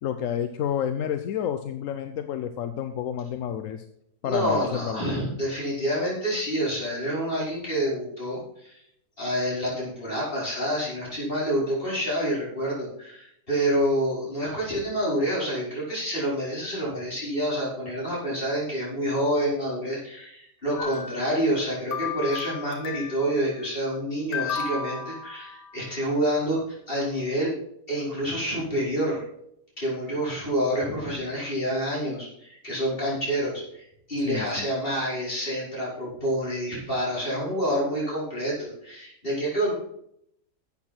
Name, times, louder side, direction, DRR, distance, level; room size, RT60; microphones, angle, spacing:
voice 1, 0.0-3.8 4.2-5.0 34.2-34.7, left 9 dB, 60° left, 9 dB, 0.9 m, -30 dB
voice 2, 4.2-8.8 9.2-26.6 26.9-27.5 27.9-29.2 29.8-39.7, equal, 30° left, -6 dB, 5.4 m, -28 dB
sound 1, 20.8-21.6 21.9-23.3 24.3-25.9, left 6 dB, 80° left, 2.0 m, -34 dB
11.5 x 8.2 x 4.4 m, 0.73 s
omnidirectional pair, 1.8 m